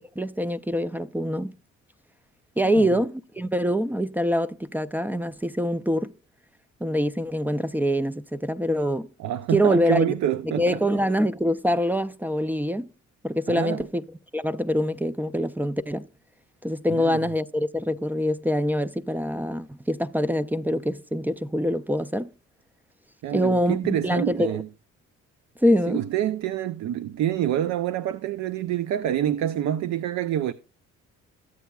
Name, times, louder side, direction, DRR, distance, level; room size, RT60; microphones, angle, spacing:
voice 1, 0.2-1.5 2.6-6.1 6.8-9.1 9.5-10.1 10.6-12.9 13.2-14.0 14.3-16.1 16.6-22.3 23.3-24.6 25.6-26.0, equal, 5° right, 0.3 m, -25 dB
voice 2, 2.6-3.0 9.2-10.8 13.5-13.9 16.9-17.3 23.2-24.7 25.9-30.5, right 11 dB, 65° right, 0.5 m, -27 dB
14.0 x 8.2 x 2.3 m
cardioid pair, 90°, 30 cm